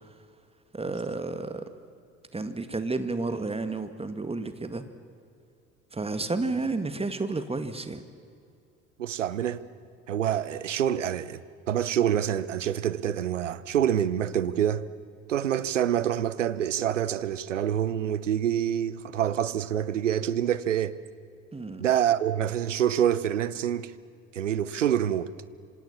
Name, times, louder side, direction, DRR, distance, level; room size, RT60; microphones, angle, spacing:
voice 1, 0.7-1.6 2.3-4.8 5.9-8.0 21.5-21.8, right 3 dB, 15° right, 2.1 m, -31 dB
voice 2, 9.0-9.6 10.1-11.4 11.7-14.8 15.3-21.0 21.8-23.9 24.3-25.3, right 10 dB, 80° right, 0.9 m, -26 dB
26.5 x 26.5 x 7.3 m
figure-of-eight pair, 55°, 36 cm